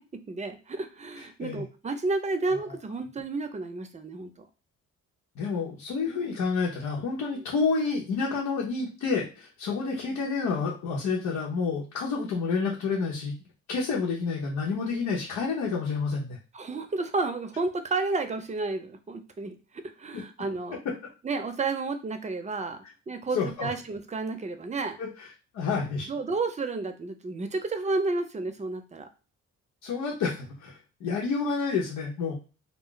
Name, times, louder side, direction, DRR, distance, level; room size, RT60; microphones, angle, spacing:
voice 1, 0.3-4.5 7.3-7.4 16.5-19.5 20.0-20.8 21.2-25.0 26.1-29.1, right 3 dB, 25° right, 7 dB, 0.6 m, -31 dB
voice 2, 5.4-13.3 13.7-16.4 23.3-23.7 25.0-25.3 25.5-26.1 29.8-32.4, left 4 dB, 80° left, -4 dB, 0.9 m, -29 dB
2.4 x 2.1 x 3.8 m, 0.34 s
cardioid pair, 90°, 30 cm